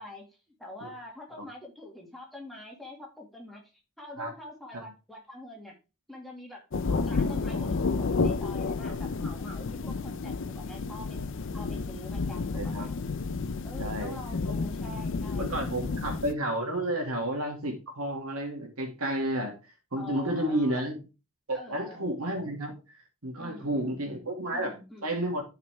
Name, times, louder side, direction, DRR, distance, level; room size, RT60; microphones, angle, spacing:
voice 1, 0.0-5.8 6.1-6.6 7.1-11.2 11.5-12.9 13.6-16.2 20.0-20.9 21.5-22.1 23.4-25.1, left 1 dB, ahead, -2 dB, 2.1 m, -45 dB
sound 1, 6.7-16.3, left 4 dB, 55° left, 0.5 m, -31 dB
voice 2, 6.9-7.7 12.6-12.9 13.8-14.2 14.5-14.6 15.4-19.6 19.9-21.0 21.5-22.8 23.2-24.7 25.0-25.4, right 1 dB, 80° right, 2 dB, 2.3 m, -31 dB
12.5 x 4.9 x 3.5 m, 0.31 s
head